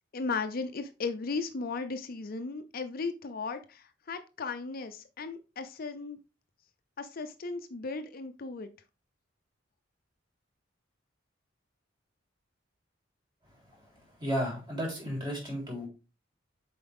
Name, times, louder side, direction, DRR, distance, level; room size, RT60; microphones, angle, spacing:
voice 1, 0.1-6.2 7.0-8.7, left 4 dB, 50° left, 9 dB, 0.6 m, -36 dB
voice 2, 14.2-15.9, equal, 25° right, -2 dB, 3.8 m, -33 dB
7.1 x 4.7 x 3.5 m, 0.30 s
head